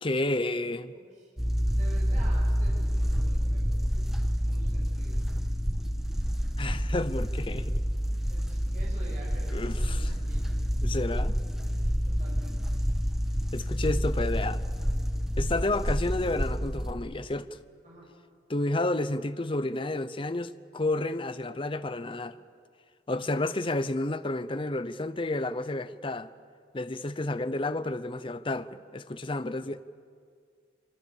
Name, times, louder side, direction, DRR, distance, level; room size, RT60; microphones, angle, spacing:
voice 1, 0.0-0.9 6.6-7.8 9.5-10.1 10.8-11.4 13.5-14.6 15.4-17.6 18.5-22.4 23.1-26.3 26.7-29.8, left 2 dB, 30° left, 0.7 m, -31 dB
sound 1, 1.4-16.9, equal, ahead, 1.2 m, -28 dB
voice 2, 1.5-4.0 4.4-5.4 8.3-10.5 12.1-12.6 17.8-18.1 23.2-23.3, right 1 dB, 45° right, 6.7 m, -49 dB
26.5 x 24.5 x 7.2 m
head